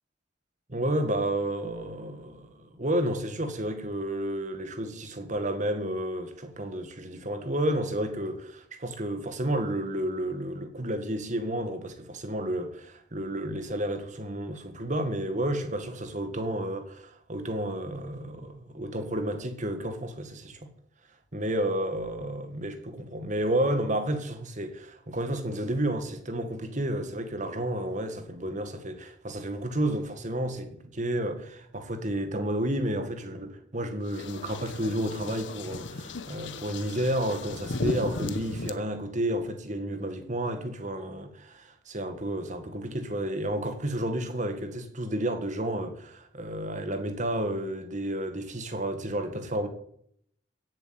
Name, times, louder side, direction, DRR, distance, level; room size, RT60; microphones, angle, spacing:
voice 1, 0.7-20.7 21.3-49.7, right 1 dB, 40° right, 1.9 m, -31 dB
sound 1, 34.1-38.7, left 3 dB, 70° left, 1.0 m, -36 dB
16.0 x 7.9 x 7.7 m
head